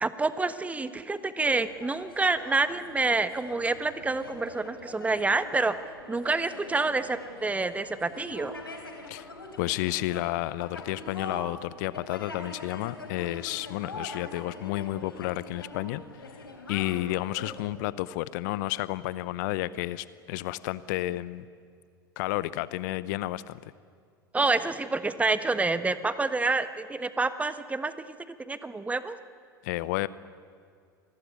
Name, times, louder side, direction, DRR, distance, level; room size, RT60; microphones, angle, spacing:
voice 1, 0.0-5.8 6.1-8.5 24.3-27.9 28.3-29.2, right 3 dB, 10° right, 12 dB, 1.3 m, -28 dB
sound 1, 1.5-17.6, left 2 dB, 85° left, 3.8 m, -43 dB
voice 2, 9.6-16.0 16.3-21.5 22.2-23.7 29.6-30.1, left 17 dB, 55° left, 18 dB, 0.8 m, -31 dB
26.5 x 20.0 x 9.8 m, 2.1 s
figure-of-eight pair, 80°, 12 cm